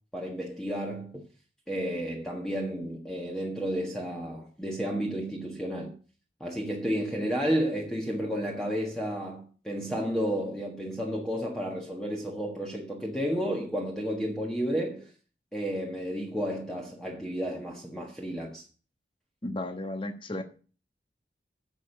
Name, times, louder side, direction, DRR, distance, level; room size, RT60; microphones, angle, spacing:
voice 1, 0.1-1.2 1.7-5.9 6.4-15.1 15.5-18.6, equal, 5° left, 1.5 m, -32 dB
voice 2, 19.4-20.4, left 1 dB, 30° left, 1.2 m, -34 dB
10.5 x 7.2 x 6.7 m
head